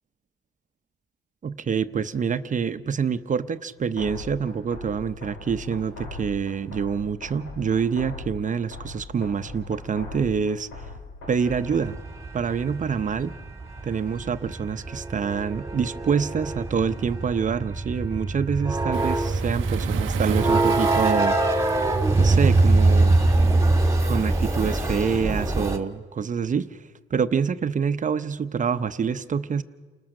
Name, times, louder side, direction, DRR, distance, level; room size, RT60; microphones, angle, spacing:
voice 1, 1.4-10.7 11.3-12.0 12.3-13.4 13.8-21.4 22.2-23.2 24.0-26.8 27.1-29.6, right 6 dB, 40° right, 11 dB, 0.8 m, -26 dB
sound 1, 4.0-12.0, left 3 dB, 80° left, 3.8 m, -40 dB
sound 2, 11.5-25.8, right 2 dB, 15° right, 2.0 m, -23 dB
Waves surf, 18.9-24.8, right 12 dB, 80° right, 0.7 m, -38 dB
29.5 x 20.0 x 6.5 m, 1.4 s
cardioid pair, 90°, 20 cm